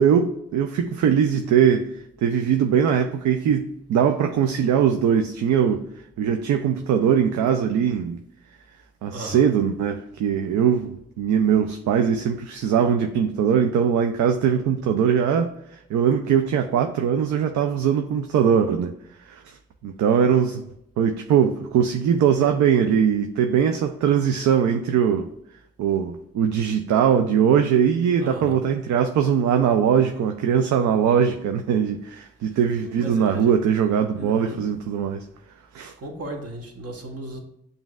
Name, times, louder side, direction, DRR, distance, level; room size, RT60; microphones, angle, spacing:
voice 1, 0.0-1.9 2.2-5.9 6.2-8.2 9.0-18.9 19.2-19.6 19.8-20.6 21.0-25.3 25.8-35.3 35.7-35.9, right 8 dB, 70° right, 0.4 m, -21 dB
voice 2, 9.1-9.5 28.2-28.6 32.4-33.6 34.1-34.6 36.0-37.4, right 1 dB, 55° right, 1.1 m, -36 dB
6.9 x 2.6 x 2.3 m
supercardioid pair, 45°, 30 cm